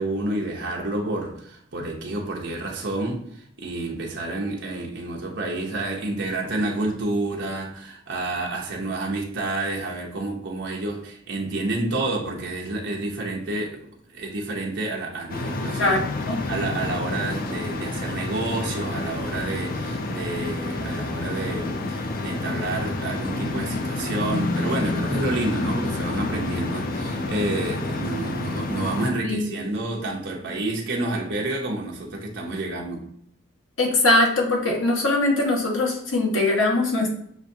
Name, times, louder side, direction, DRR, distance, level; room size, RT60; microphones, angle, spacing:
voice 1, 0.0-16.0 16.5-33.1, right 2 dB, 60° right, -2 dB, 0.9 m, -29 dB
sound 1, 15.3-29.1, left 2 dB, 45° left, 0.5 m, -29 dB
voice 2, 33.8-37.1, left 2 dB, 75° left, -1 dB, 1.3 m, -21 dB
7.1 x 2.6 x 2.7 m, 0.68 s
head